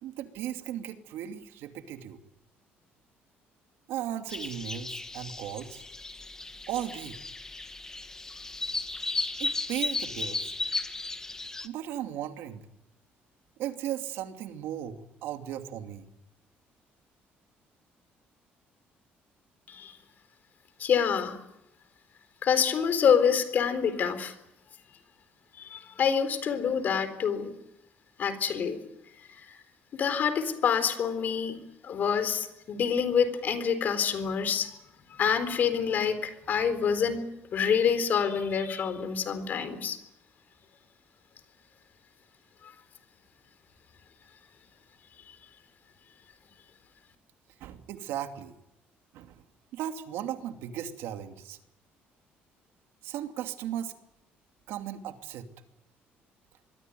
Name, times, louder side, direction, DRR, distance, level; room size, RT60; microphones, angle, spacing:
voice 1, 0.0-2.2 3.9-5.8 6.7-7.2 9.4-10.5 11.6-12.6 13.6-16.1 47.6-48.5 49.1-49.4 49.7-51.6 53.0-53.9 54.7-55.5, right 11 dB, 85° right, 6 dB, 2.7 m, -36 dB
sound 1, 4.3-11.7, left 3 dB, 15° left, 1.6 m, -35 dB
voice 2, 20.8-21.4 22.4-24.3 24.9-25.0 25.6-27.5 28.2-28.8 29.4-29.6 29.9-31.6 31.8-34.7 35.2-37.2 37.5-40.0, left 7 dB, 45° left, 11 dB, 3.9 m, -27 dB
26.0 x 22.0 x 9.3 m, 0.87 s
cardioid pair, 150°, 4 cm